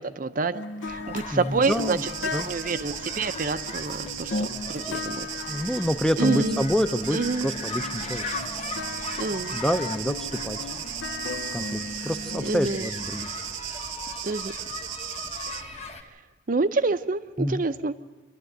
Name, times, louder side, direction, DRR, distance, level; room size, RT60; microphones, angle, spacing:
voice 1, 0.0-2.0 2.5-5.7 6.2-6.7 7.1-7.5 9.2-9.6 12.4-12.9 14.2-14.5 15.5-15.9 16.5-17.9, right 3 dB, 45° right, 11 dB, 0.6 m, -28 dB
sound 1, 0.5-13.6, left 3 dB, 65° left, 0.6 m, -36 dB
sound 2, 0.9-16.0, left 3 dB, 35° left, 1.1 m, -39 dB
voice 2, 1.3-2.0 2.3-2.5 5.5-8.5 9.5-10.7 11.5-13.3 17.4-17.7, equal, 5° left, 8 dB, 0.5 m, -28 dB
sound 3, 1.6-15.6, right 11 dB, 80° right, 0.8 m, -36 dB
27.5 x 12.0 x 7.9 m, 1.3 s
head